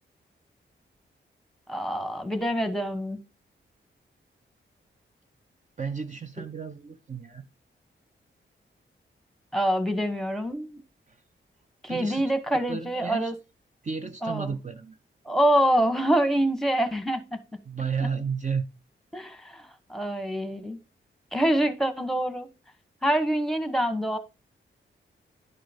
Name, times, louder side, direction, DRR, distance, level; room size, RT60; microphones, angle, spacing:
voice 1, 1.7-3.2 9.5-10.8 11.8-13.3 14.2-14.5 15.3-17.4 18.0-18.1 19.1-20.8 21.3-22.5 23.0-24.2, right 1 dB, ahead, 1.2 m, -26 dB
voice 2, 5.8-7.4 11.1-11.2 11.9-12.2 12.7-13.3 13.8-15.0 17.7-18.7, right 5 dB, 35° right, 0.6 m, -32 dB
11.0 x 3.8 x 5.1 m
wide cardioid pair, 85°, 20 cm